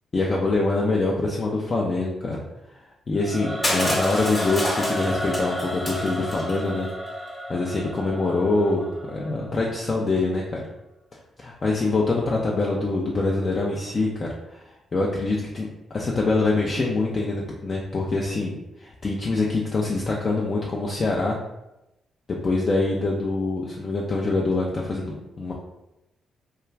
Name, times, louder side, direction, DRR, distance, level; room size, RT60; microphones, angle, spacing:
voice 1, 0.1-2.4 3.1-6.9 7.5-10.6 11.1-15.7 15.9-21.4 22.4-25.5, left 3 dB, 40° left, -3 dB, 0.4 m, -25 dB
Singing / Musical instrument, 3.2-10.3, equal, 15° right, 0.6 m, -32 dB
Crushing, 3.6-6.6, left 1 dB, 20° left, 1.0 m, -29 dB
2.3 x 2.3 x 3.2 m, 0.92 s
hypercardioid pair, 40°, 0 cm